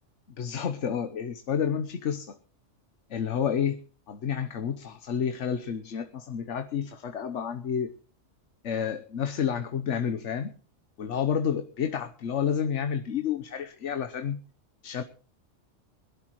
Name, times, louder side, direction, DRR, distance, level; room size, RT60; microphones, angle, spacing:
voice 1, 0.3-2.4 3.1-3.8 4.1-7.9 8.6-10.5 11.0-14.4 14.8-15.0, left 7 dB, 70° left, 8 dB, 1.3 m, -30 dB
21.5 x 12.0 x 3.0 m, 0.38 s
omnidirectional pair, 1.3 m